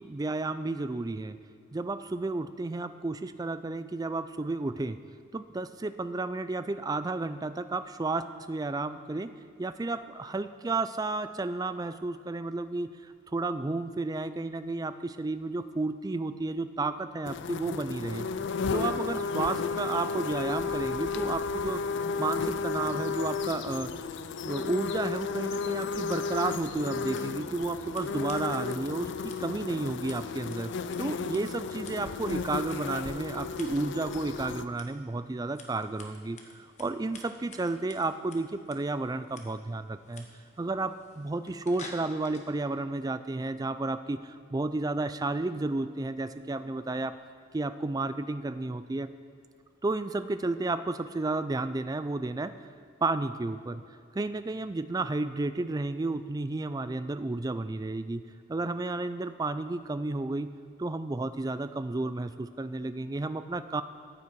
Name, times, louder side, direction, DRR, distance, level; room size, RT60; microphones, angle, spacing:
voice 1, 0.0-1.4 1.7-5.0 5.3-9.3 9.6-18.3 18.7-21.8 22.2-23.9 24.5-30.7 31.0-40.3 40.6-47.1 47.5-49.1 49.8-52.5 53.0-53.8 54.1-58.2 58.5-60.5 60.8-63.8, right 2 dB, 20° right, 12 dB, 0.3 m, -32 dB
sound 1, 17.2-34.7, left 5 dB, 55° left, 0.4 m, -33 dB
Scissors, 25.9-42.5, left 3 dB, 35° left, 1.1 m, -53 dB
14.0 x 8.6 x 4.6 m, 2.3 s
head